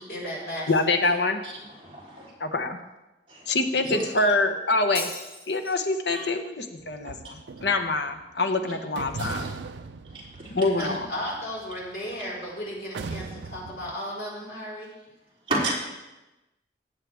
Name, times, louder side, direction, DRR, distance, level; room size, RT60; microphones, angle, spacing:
voice 1, 0.0-1.2 10.8-14.9, equal, 60° left, -5 dB, 4.7 m, -35 dB
voice 2, 0.7-1.4 2.4-2.8 3.5-5.1 5.5-9.4 10.5-11.1, left 2 dB, 80° left, 6 dB, 1.0 m, -25 dB
voice 3, 1.4-2.3 3.3-3.5 3.8-4.1 6.1-6.2 9.1-9.5 10.0-10.5 10.8-11.0 15.5-15.8, right 2 dB, 30° right, -6 dB, 3.5 m, -32 dB
Shatter, 4.9-5.9, equal, 10° left, 1.8 m, -38 dB
sound 1, 6.8-8.2 8.9-12.4 12.9-13.9, right 4 dB, 90° right, 0.5 m, -39 dB
17.5 x 7.5 x 3.5 m, 1.0 s
head